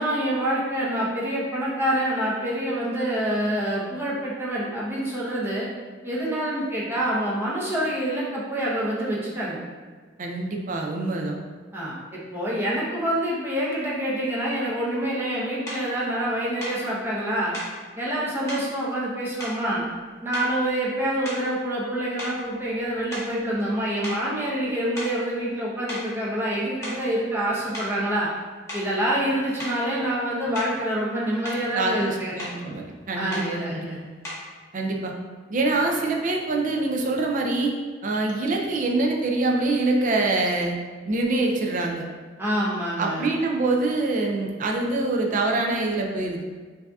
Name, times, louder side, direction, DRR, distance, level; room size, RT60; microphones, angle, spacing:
voice 1, 0.0-5.7 6.0-9.6 11.7-17.5 18.0-19.8 20.2-28.3 28.7-32.3 33.1-34.0 42.4-43.3, right 1 dB, 10° right, -6 dB, 0.9 m, -26 dB
voice 2, 10.2-11.4 31.7-33.9 34.7-35.1 35.5-37.7 38.0-40.8 41.1-42.1 43.0-46.4, right 2 dB, 45° right, 1 dB, 0.5 m, -25 dB
sound 1, 15.7-15.9 16.6-16.8 17.5-17.8 18.5-18.7 19.4-20.0 20.3-20.7 21.2-21.6 22.2-23.7 24.0-24.3 25.0-25.2 25.9-26.1 26.6-27.1 27.7-28.0 28.7-28.9 29.6-29.8 30.5-30.8 31.2-31.7 32.4-32.6 33.3-33.5 34.2-34.5, left 1 dB, 15° left, 1.4 m, -36 dB
5.5 x 2.7 x 2.4 m, 1.5 s
head